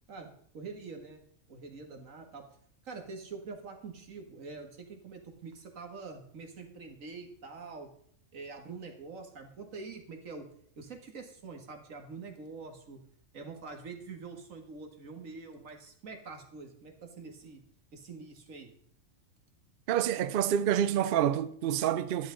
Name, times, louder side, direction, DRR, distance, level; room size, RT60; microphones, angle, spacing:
voice 1, 0.1-1.2 1.5-2.4 2.8-7.9 8.3-10.5 10.8-13.0 13.3-17.6 17.9-18.7, right 4 dB, 85° right, 1.9 m, -45 dB
voice 2, 19.9-22.3, right 10 dB, 60° right, 0.6 m, -28 dB
10.5 x 10.5 x 3.8 m
omnidirectional pair, 1.3 m